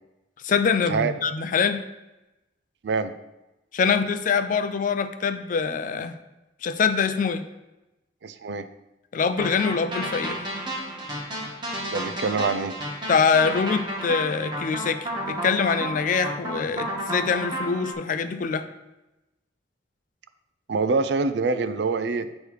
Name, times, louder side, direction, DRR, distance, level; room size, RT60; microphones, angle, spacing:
voice 1, 0.4-1.8 3.7-6.2 6.6-7.4 9.1-10.4 13.1-18.7, left 5 dB, 45° left, 10 dB, 0.4 m, -24 dB
voice 2, 2.8-3.1 8.2-8.7 11.9-12.8 20.7-22.3, right 4 dB, 70° right, 11 dB, 0.4 m, -25 dB
sound 1, 9.4-17.9, equal, 25° right, 1.7 m, -31 dB
8.3 x 3.1 x 4.8 m, 0.98 s
head